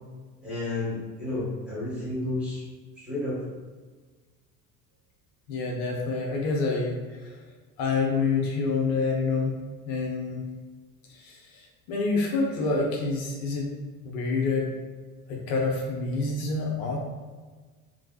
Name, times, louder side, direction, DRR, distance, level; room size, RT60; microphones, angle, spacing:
voice 1, 0.4-2.6 3.0-3.4, left 2 dB, ahead, -9 dB, 1.3 m, -31 dB
voice 2, 5.5-7.0 7.8-9.6 9.9-10.4 11.1-13.7 14.0-14.7 15.3-17.0, left 3 dB, 60° left, -1 dB, 0.7 m, -27 dB
3.3 x 2.0 x 2.3 m, 1.4 s
figure-of-eight pair, 65°, 46 cm